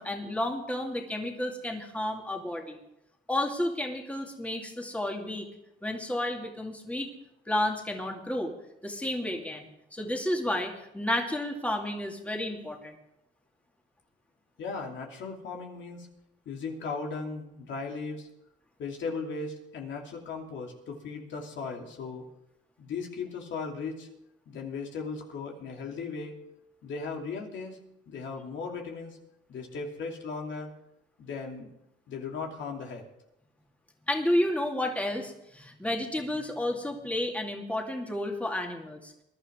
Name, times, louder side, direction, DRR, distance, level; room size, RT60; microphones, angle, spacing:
voice 1, 0.0-2.8 3.3-5.5 5.8-7.1 7.5-8.5 8.8-9.7 9.9-12.9 34.1-39.1, left 1 dB, 5° left, 1 dB, 2.3 m, -31 dB
voice 2, 14.6-16.1 16.4-18.3 18.8-22.2 22.8-24.1 24.5-26.3 26.8-27.8 28.1-29.2 29.5-30.7 31.2-31.7 32.1-33.0, left 4 dB, 70° left, 1 dB, 2.8 m, -37 dB
21.5 x 11.5 x 3.7 m, 0.81 s
cardioid pair, 90°, 20 cm